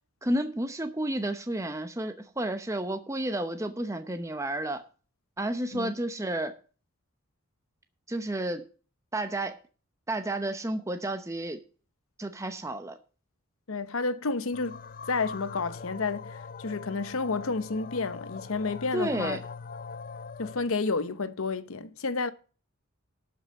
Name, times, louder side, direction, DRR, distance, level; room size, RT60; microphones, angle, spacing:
voice 1, 0.2-4.8 5.4-6.5 8.1-8.6 9.1-9.6 10.1-11.6 12.2-13.0 18.9-19.4, right 1 dB, 15° right, 0.7 m, -31 dB
voice 2, 13.7-14.8 15.1-19.4 20.4-22.3, left 4 dB, 70° left, 0.9 m, -30 dB
sound 1, 14.5-20.7, left 5 dB, 40° left, 0.5 m, -42 dB
12.0 x 5.5 x 7.6 m
head